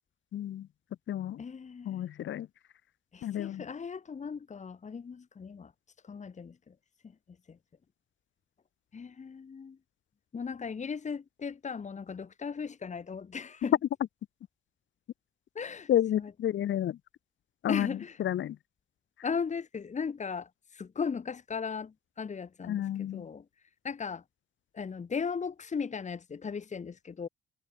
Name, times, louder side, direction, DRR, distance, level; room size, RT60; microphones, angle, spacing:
voice 1, 0.3-0.7 1.1-1.4 1.9-2.5 3.2-3.6 15.9-17.0 17.6-17.9 18.2-18.6 22.7-23.3, left 11 dB, 70° left, 3.4 m, -30 dB
voice 2, 1.4-2.0 3.1-5.7 6.0-6.7 7.0-7.1 7.5-7.6 8.9-9.8 10.3-13.8 15.5-16.3 17.7-18.2 19.2-23.5 23.8-24.2 24.7-27.3, left 6 dB, 35° left, 2.4 m, -37 dB
cardioid pair, 90°, 20 cm